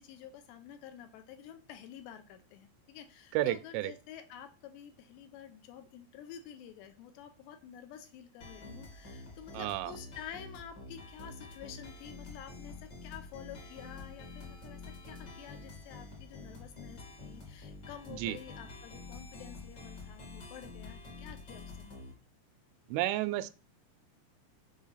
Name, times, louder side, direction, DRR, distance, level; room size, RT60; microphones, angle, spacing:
voice 1, 0.0-22.0, left 9 dB, 80° left, 8 dB, 2.8 m, -50 dB
voice 2, 3.3-3.9 9.5-9.9 18.2-18.4 22.9-23.5, right 15 dB, 85° right, 14 dB, 3.0 m, -31 dB
sound 1, 8.4-22.1, left 3 dB, 35° left, 1.8 m, -48 dB
7.4 x 4.9 x 5.6 m, 0.34 s
omnidirectional pair, 5.4 m